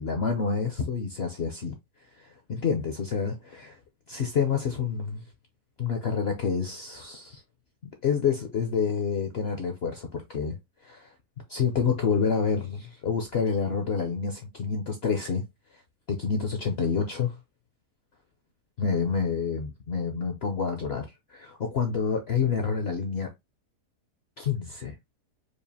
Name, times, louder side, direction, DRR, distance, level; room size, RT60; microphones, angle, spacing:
voice 1, 0.0-1.7 2.2-3.8 4.1-5.2 5.8-7.4 8.0-10.6 10.8-11.1 11.5-15.4 16.1-17.4 18.8-23.3 24.4-24.9, left 6 dB, 60° left, 0.6 m, -28 dB
4.8 x 2.5 x 2.7 m
omnidirectional pair, 1.7 m